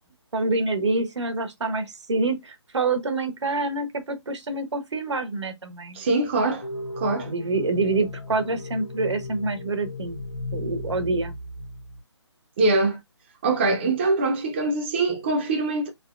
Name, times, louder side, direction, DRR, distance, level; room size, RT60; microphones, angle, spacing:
voice 1, 0.3-6.0 7.3-10.2 10.5-11.3, right 3 dB, 70° right, 1.0 m, -26 dB
voice 2, 5.9-6.7 7.0-7.3 12.6-13.0 13.4-15.9, right 3 dB, 25° right, 0.6 m, -23 dB
sound 1, 6.6-12.0, left 2 dB, 60° left, 1.1 m, -36 dB
3.5 x 2.8 x 2.4 m
hypercardioid pair, 160°, 15 cm